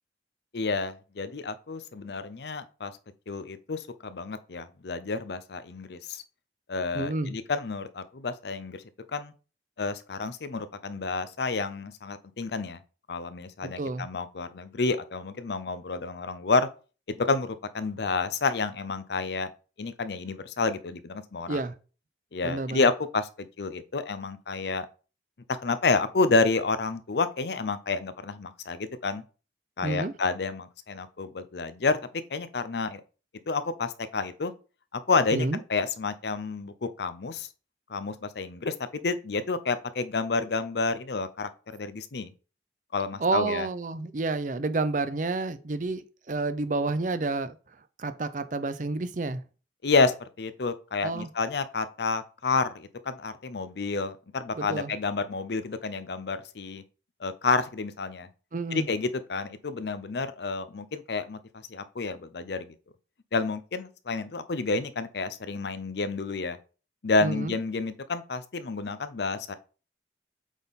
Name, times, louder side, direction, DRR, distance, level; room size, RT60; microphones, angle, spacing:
voice 1, 0.5-2.9 3.3-6.2 6.7-8.8 9.1-9.3 9.8-12.8 13.1-16.7 17.1-19.5 19.8-21.6 22.3-24.9 25.5-29.2 29.8-32.0 32.3-33.0 33.5-34.5 34.9-37.5 37.9-42.3 42.9-43.7 49.8-56.8 57.2-58.3 58.7-61.4 61.7-62.7 63.3-66.6 67.0-69.5, left 4 dB, 70° left, 0.6 m, -29 dB
voice 2, 6.9-7.3 13.6-14.0 21.5-21.7 22.4-22.9 29.8-30.1 35.3-35.6 43.2-47.6 48.0-49.4 51.0-51.3 54.6-54.9 58.5-58.9 67.2-67.6, right 3 dB, 45° right, 0.6 m, -29 dB
8.2 x 3.7 x 4.1 m
head